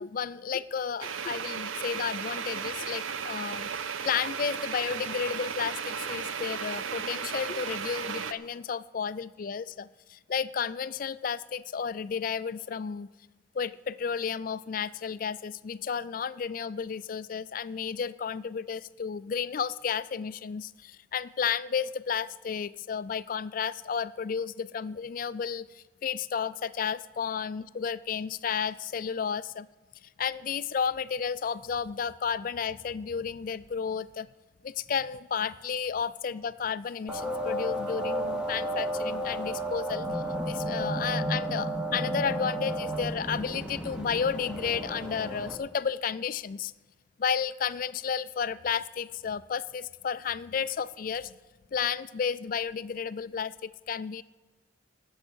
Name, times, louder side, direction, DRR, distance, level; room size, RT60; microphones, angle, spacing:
voice 1, 0.0-3.7 4.0-13.1 13.5-29.7 30.2-34.3 34.6-46.7 47.2-51.3 51.7-54.2, left 6 dB, 45° left, 17 dB, 0.3 m, -32 dB
sound 1, 1.0-8.3, right 7 dB, 85° right, 0.6 m, -35 dB
sound 2, 37.1-45.6, right 1 dB, 5° right, 1.0 m, -32 dB
18.5 x 7.1 x 6.3 m, 1.3 s
head